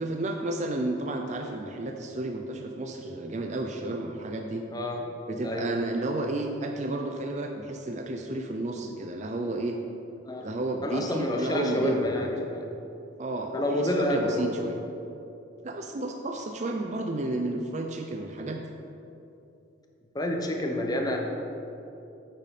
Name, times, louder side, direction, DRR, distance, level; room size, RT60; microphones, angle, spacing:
voice 1, 0.0-4.6 5.3-9.8 10.4-12.3 13.2-14.8 15.6-18.6, right 2 dB, 35° right, 3 dB, 0.5 m, -32 dB
voice 2, 4.7-5.1 5.4-5.7 10.3-10.5 10.8-12.6 13.5-14.5 20.1-21.2, left 1 dB, 20° left, 2 dB, 0.8 m, -28 dB
9.1 x 7.4 x 4.2 m, 2.8 s
head